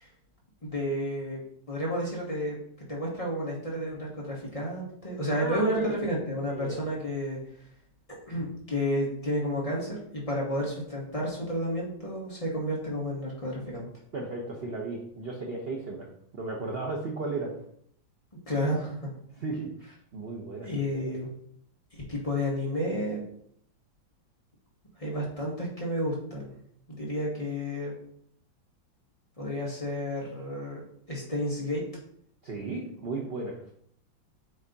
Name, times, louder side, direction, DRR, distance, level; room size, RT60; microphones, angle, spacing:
voice 1, 0.6-1.4 1.7-7.4 8.3-13.8 18.5-18.9 20.6-21.3 22.1-23.2 25.0-26.5 26.9-27.9 29.4-30.8 31.1-31.8, equal, 20° left, -4 dB, 1.6 m, -31 dB
voice 2, 5.3-6.0 6.5-6.8 14.1-16.1 16.4-17.5 19.4-19.7 20.1-21.2 32.4-33.7, right 3 dB, 55° right, 0 dB, 0.7 m, -35 dB
8.0 x 3.5 x 4.0 m, 0.67 s
omnidirectional pair, 2.2 m